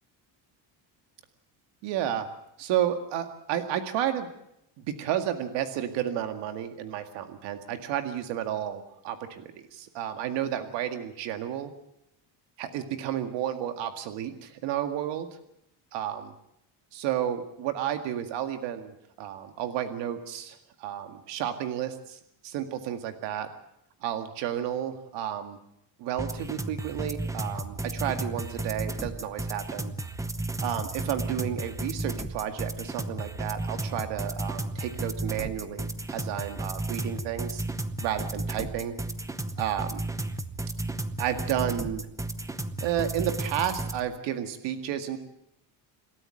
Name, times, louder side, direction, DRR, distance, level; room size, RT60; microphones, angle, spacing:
voice 1, 1.8-2.3 2.6-4.3 4.8-11.7 12.6-15.3 15.9-16.3 16.9-23.5 24.0-25.6 26.0-29.9 30.6-37.6 38.0-39.0 39.6-40.1 41.2-42.1 42.8-45.2, right 10 dB, 75° right, 8 dB, 2.1 m, -32 dB
sound 1, 26.2-44.0, right 2 dB, 5° right, 0.8 m, -34 dB
27.5 x 13.0 x 7.7 m, 0.79 s
cardioid pair, 180°, 43 cm